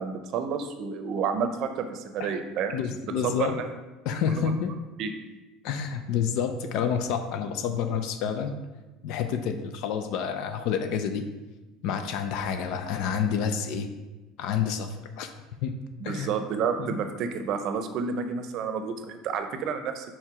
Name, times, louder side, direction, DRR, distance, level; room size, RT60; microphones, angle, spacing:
voice 1, 0.0-2.8 3.2-3.7 4.3-4.5 5.0-5.1 16.0-20.1, right 6 dB, 50° right, 7 dB, 0.6 m, -30 dB
voice 2, 2.7-3.5 4.1-4.7 5.6-8.5 9.0-11.2 11.8-13.9 14.4-15.3 15.6-15.7 16.0-16.3 16.8-17.0, left 7 dB, 60° left, 7 dB, 0.5 m, -29 dB
4.6 x 4.3 x 4.9 m, 1.1 s
supercardioid pair, 135°, 0 cm